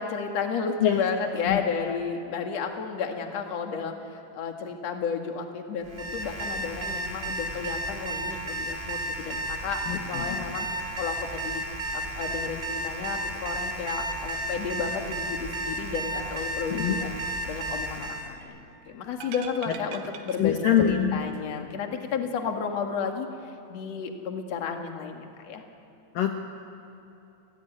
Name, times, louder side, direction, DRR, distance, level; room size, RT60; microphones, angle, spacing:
voice 1, 0.0-10.7 11.0-11.6 11.9-17.1 17.5-25.6, left 6 dB, 50° left, 3 dB, 2.2 m, -32 dB
Alarm, 5.8-18.3, right 1 dB, 15° right, 2.0 m, -33 dB
voice 2, 9.9-10.4 16.7-17.0 19.7-19.8 20.4-21.2 26.1-26.4, left 10 dB, 75° left, 3 dB, 2.1 m, -24 dB
sound 1, 19.1-21.1 21.3-21.4, right 7 dB, 75° right, 3.7 m, -43 dB
29.5 x 19.5 x 9.4 m, 2.9 s
omnidirectional pair, 5.8 m